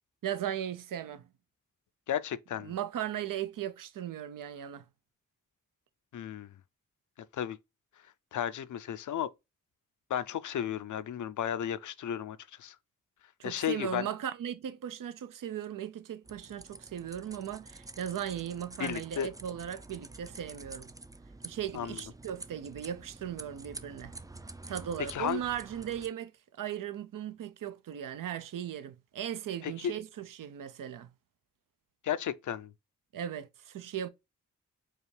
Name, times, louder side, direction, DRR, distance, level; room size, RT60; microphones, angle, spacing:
voice 1, 0.2-1.3 2.6-4.8 13.4-20.9 21.4-24.1 24.7-26.3 26.6-31.1 33.1-34.1, right 10 dB, 75° right, 0.6 m, -37 dB
voice 2, 2.1-2.7 6.1-6.5 7.3-7.6 8.3-9.3 10.1-12.8 13.4-14.1 18.8-19.3 21.7-22.0 25.1-25.4 29.6-30.0 32.0-32.7, left 9 dB, 65° left, 0.5 m, -34 dB
sound 1, 16.3-26.1, right 2 dB, 10° right, 0.4 m, -48 dB
4.7 x 2.4 x 3.2 m
cardioid pair, 45°, 33 cm